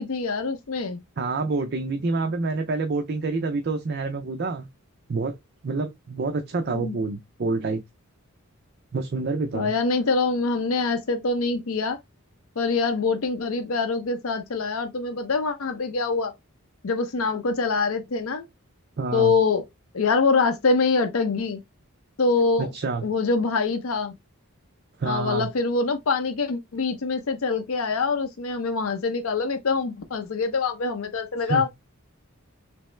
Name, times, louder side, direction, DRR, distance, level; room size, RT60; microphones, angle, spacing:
voice 1, 0.0-1.0 6.7-7.0 9.5-12.0 12.6-16.3 16.8-18.4 19.1-19.6 19.9-21.6 22.2-22.7 23.0-24.1 25.1-31.7, left 4 dB, 75° left, 0.6 m, -24 dB
voice 2, 1.2-4.7 5.1-5.4 5.6-7.8 8.9-9.7 19.0-19.3 22.6-23.0 25.0-25.5 31.5-31.7, right 3 dB, 50° right, 0.4 m, -27 dB
3.4 x 3.0 x 3.1 m
head